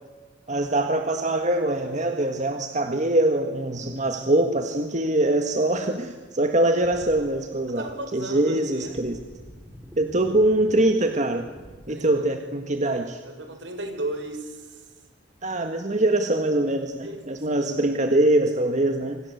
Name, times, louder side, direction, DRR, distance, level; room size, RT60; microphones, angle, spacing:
voice 1, 0.5-9.2 10.0-11.5 11.9-13.2 15.4-19.2, right 1 dB, 40° right, 6 dB, 1.7 m, -23 dB
sound 1, 6.8-7.3 7.9-8.0 8.8-11.8, equal, 15° right, 5.3 m, -45 dB
voice 2, 7.7-9.0 11.9-12.3 13.3-14.9 17.0-17.6, right 2 dB, 70° right, 6 dB, 5.8 m, -35 dB
28.0 x 25.5 x 8.1 m, 1.3 s
head